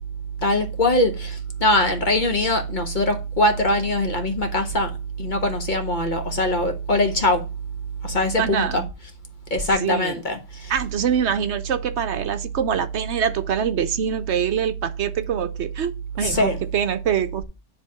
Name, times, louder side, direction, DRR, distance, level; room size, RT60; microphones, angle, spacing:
voice 1, 0.4-4.9 5.2-7.4 8.0-8.8 9.5-10.7 16.2-16.6, left 1 dB, 40° left, 1.4 m, -22 dB
voice 2, 8.4-8.9 9.8-10.1 10.7-17.4, right 8 dB, 65° right, 0.9 m, -24 dB
10.0 x 3.5 x 5.8 m
omnidirectional pair, 1.3 m